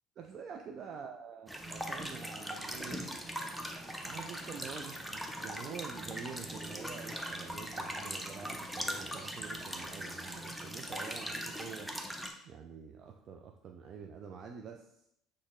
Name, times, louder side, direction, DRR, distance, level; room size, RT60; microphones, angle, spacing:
voice 1, 0.2-3.0 4.0-11.9 12.4-14.9, right 6 dB, 50° right, 3 dB, 0.3 m, -47 dB
sound 1, 1.5-12.3, equal, 5° right, 0.5 m, -40 dB
4.3 x 2.0 x 3.6 m, 0.74 s
hypercardioid pair, 60°, 0 cm